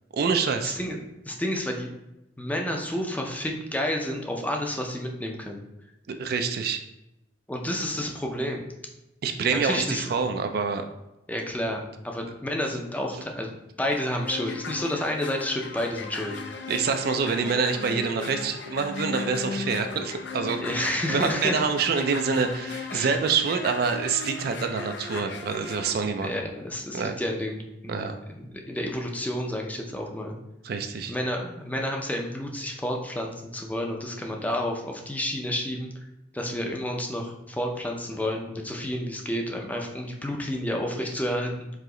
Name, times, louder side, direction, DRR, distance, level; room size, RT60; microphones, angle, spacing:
voice 1, 0.1-0.8 6.1-6.8 9.2-10.8 16.7-26.3 26.9-27.2 27.9-28.2 30.6-31.1, right 5 dB, 55° right, 7 dB, 0.4 m, -26 dB
voice 2, 0.6-1.0 1.3-1.9 2.4-5.6 7.5-8.6 9.5-10.2 11.3-13.5 13.8-16.3 20.6-21.6 22.9-23.2 26.2-30.4 31.1-35.9 36.3-41.7, left 1 dB, 10° left, 1 dB, 0.5 m, -30 dB
sound 1, 13.9-25.9, left 4 dB, 70° left, 0.5 m, -37 dB
4.8 x 2.9 x 3.7 m, 0.92 s
head